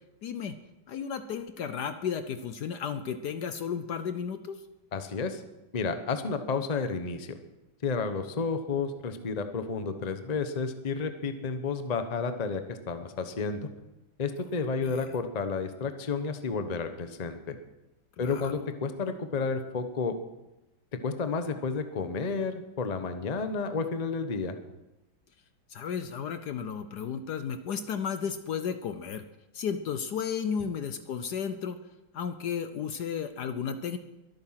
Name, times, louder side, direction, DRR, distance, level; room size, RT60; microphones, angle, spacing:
voice 1, 0.2-0.6 0.9-4.6 14.8-15.2 18.2-18.5 25.7-29.2 29.5-31.8 32.1-34.0, left 7 dB, 65° left, 10 dB, 1.2 m, -33 dB
voice 2, 4.9-5.4 5.7-7.4 7.8-13.7 14.2-17.5 18.2-20.1 21.0-24.6, left 4 dB, 30° left, 8 dB, 0.8 m, -31 dB
22.5 x 9.2 x 5.8 m, 0.98 s
omnidirectional pair, 2.2 m